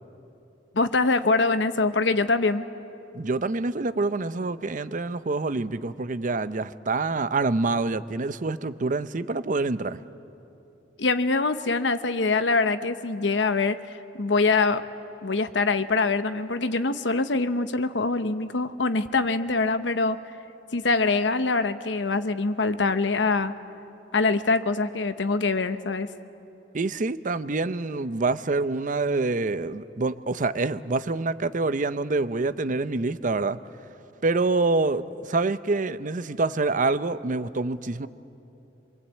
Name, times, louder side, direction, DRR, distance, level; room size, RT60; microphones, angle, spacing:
voice 1, 0.7-2.6 11.0-14.8 15.2-20.2 20.7-23.5 24.1-26.1, left 3 dB, 80° left, 11 dB, 1.0 m, -24 dB
voice 2, 3.1-10.0 26.7-33.6 34.2-38.1, right 3 dB, 45° right, 13 dB, 0.7 m, -26 dB
26.5 x 23.0 x 8.4 m, 3.0 s
head